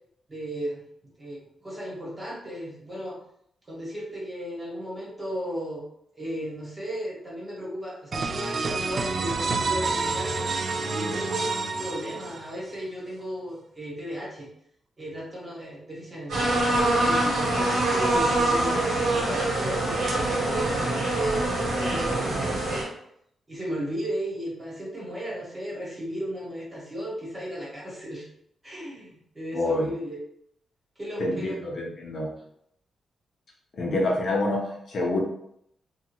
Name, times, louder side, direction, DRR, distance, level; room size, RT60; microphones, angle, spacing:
voice 1, 0.3-0.8 1.2-3.2 3.7-5.8 6.1-10.4 10.9-14.5 15.0-22.9 23.5-28.2 28.6-30.2 31.0-31.6, equal, 25° right, -6 dB, 1.3 m, -35 dB
sound 1, 8.1-12.7, right 4 dB, 50° right, 0.3 m, -28 dB
sound 2, 16.3-22.8, right 2 dB, 80° right, 0.9 m, -24 dB
voice 2, 29.5-29.9 31.2-32.3 33.7-35.2, left 1 dB, 55° left, -2 dB, 0.7 m, -27 dB
2.8 x 2.3 x 2.9 m, 0.72 s
cardioid pair, 115°, 0 cm